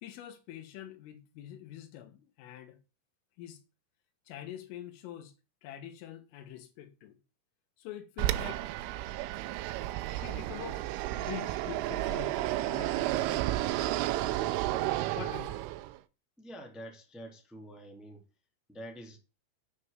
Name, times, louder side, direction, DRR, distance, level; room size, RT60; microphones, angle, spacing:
voice 1, 0.0-2.8 3.4-3.6 4.3-5.3 5.6-7.2 7.8-8.7 10.1-10.9 11.2-14.5 15.2-15.6, left 11 dB, 85° left, 4.0 m, -45 dB
Fixed-wing aircraft airplane, 8.2-16.0, right 15 dB, 80° right, 3.1 m, -32 dB
voice 2, 16.4-18.2 18.7-19.2, equal, ahead, 1.3 m, -46 dB
9.1 x 6.8 x 7.3 m
omnidirectional pair, 5.6 m